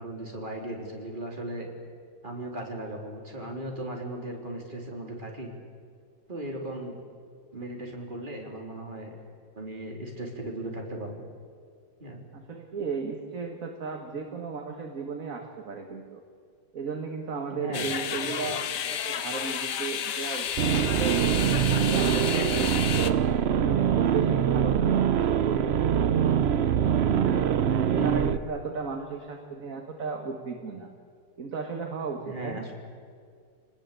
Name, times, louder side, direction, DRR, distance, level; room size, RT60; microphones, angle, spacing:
voice 1, 0.0-1.7 2.2-5.5 6.3-6.9 7.5-9.2 9.5-11.2 12.0-12.2 17.5-18.5 27.9-28.3 32.2-32.7, right 1 dB, 25° right, 0 dB, 3.6 m, -37 dB
voice 2, 12.3-16.2 16.7-21.2 21.6-23.2 23.6-26.3 27.1-30.9 31.4-32.7, right 5 dB, 50° right, 3 dB, 2.0 m, -35 dB
sound 1, 17.7-23.1, left 9 dB, 70° left, 1.5 m, -31 dB
sound 2, 20.6-28.4, right 8 dB, 65° right, 0.6 m, -24 dB
27.5 x 19.0 x 8.4 m, 2.1 s
omnidirectional pair, 2.0 m